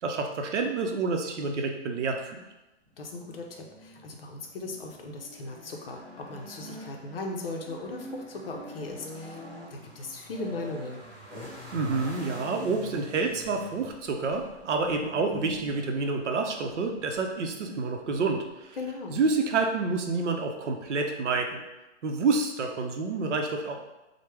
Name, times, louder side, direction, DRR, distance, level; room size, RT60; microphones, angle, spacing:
voice 1, 0.0-2.4 11.7-18.8 19.1-21.6 22.0-23.8, right 4 dB, 80° right, 3 dB, 0.6 m, -28 dB
sound 1, 2.9-19.5, equal, 20° right, 0.5 m, -46 dB
voice 2, 3.0-9.4 9.7-11.0 18.8-19.2, left 2 dB, 55° left, 2 dB, 0.6 m, -38 dB
3.1 x 2.1 x 3.2 m, 0.99 s
hypercardioid pair, 170°, 35 cm